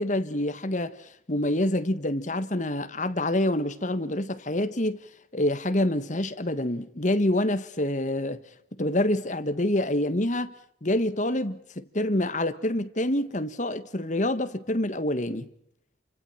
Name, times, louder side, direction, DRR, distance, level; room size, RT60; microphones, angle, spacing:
voice 1, 0.0-5.0 5.3-8.4 8.8-10.5 10.8-15.5, left 1 dB, 40° left, 1.5 m, -27 dB
30.0 x 25.5 x 5.9 m
head